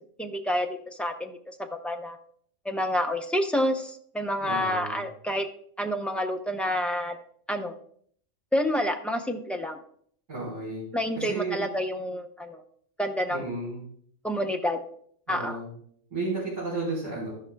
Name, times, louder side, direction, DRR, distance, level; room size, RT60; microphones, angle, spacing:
voice 1, 0.0-2.2 2.6-5.5 5.8-7.2 7.5-7.8 8.5-9.8 10.9-12.6 13.0-13.5 14.2-14.8 15.3-15.6, equal, ahead, 3 dB, 0.4 m, -28 dB
voice 2, 4.4-5.0 10.3-10.8 11.1-11.6 13.3-13.8 15.3-15.7 16.1-17.3, right 3 dB, 75° right, -9 dB, 5.0 m, -32 dB
13.5 x 11.0 x 2.3 m, 0.62 s
omnidirectional pair, 1.3 m